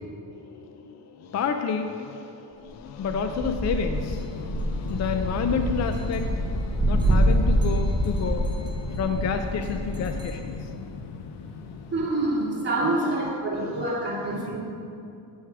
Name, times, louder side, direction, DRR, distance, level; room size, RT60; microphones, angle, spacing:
voice 1, 0.3-10.8 13.0-13.1, left 6 dB, 45° left, 6 dB, 0.4 m, -30 dB
sound 1, 3.0-10.5, right 1 dB, 10° right, 1.0 m, -26 dB
sound 2, 3.9-12.1, left 5 dB, 85° left, 0.7 m, -37 dB
voice 2, 11.9-14.6, right 2 dB, 25° right, -6 dB, 2.2 m, -26 dB
9.1 x 6.4 x 4.7 m, 2.6 s
cardioid pair, 145°, 40 cm